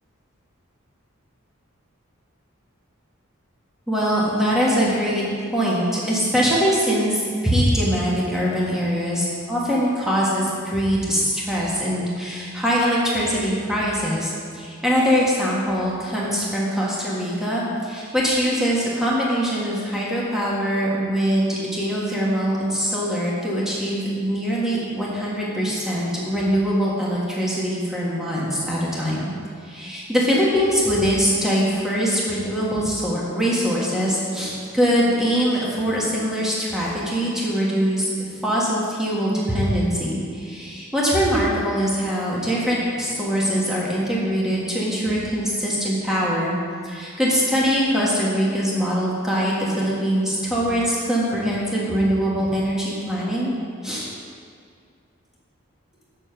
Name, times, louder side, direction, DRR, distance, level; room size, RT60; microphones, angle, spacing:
voice 1, 3.9-5.2 5.5-29.3 29.6-46.5 46.8-53.5 53.8-54.1, equal, ahead, -6 dB, 1.6 m, -22 dB
7.2 x 6.5 x 5.8 m, 2.2 s
head